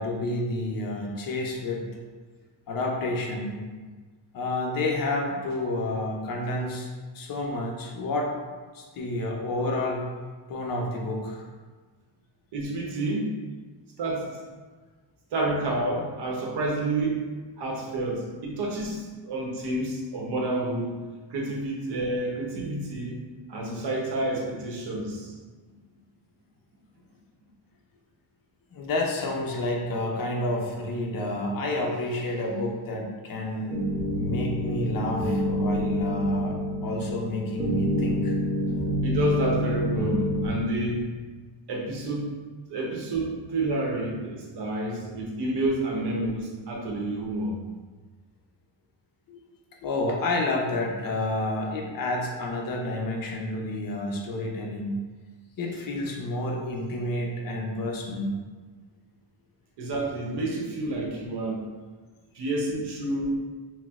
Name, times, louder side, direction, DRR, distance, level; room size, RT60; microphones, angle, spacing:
voice 1, 0.0-1.8 2.7-3.6 4.3-6.9 7.1-8.4 8.7-10.1 10.5-11.4 28.7-33.8 34.2-38.4 49.3-49.4 49.8-55.0 55.6-58.3, left 2 dB, 50° left, 0 dB, 0.6 m, -29 dB
voice 2, 12.5-13.4 14.0-14.4 15.3-17.3 17.6-21.0 21.3-23.2 23.5-25.4 39.0-41.2 41.7-42.4 42.7-47.6 59.8-61.7 62.3-63.3, right 2 dB, 65° right, -2 dB, 0.8 m, -29 dB
sound 1, 33.7-40.5, equal, 25° right, 0.5 m, -27 dB
4.2 x 2.0 x 2.3 m, 1.4 s
cardioid pair, 135°, 44 cm